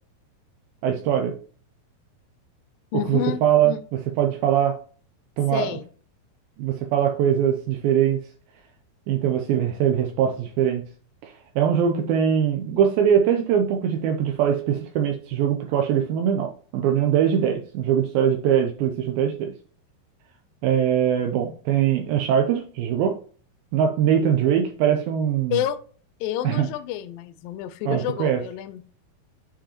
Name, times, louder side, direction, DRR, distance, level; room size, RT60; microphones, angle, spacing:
voice 1, 0.8-1.3 3.1-3.7 4.2-4.8 5.4-5.7 6.6-8.2 9.1-10.8 11.2-19.5 20.6-23.2 23.7-25.6 26.4-26.7 27.9-28.4, right 9 dB, 80° right, 2.3 m, -22 dB
voice 2, 2.9-3.8 5.5-5.8 25.5-25.8 26.2-28.8, left 12 dB, 85° left, 2.0 m, -29 dB
8.7 x 4.9 x 2.8 m
omnidirectional pair, 4.6 m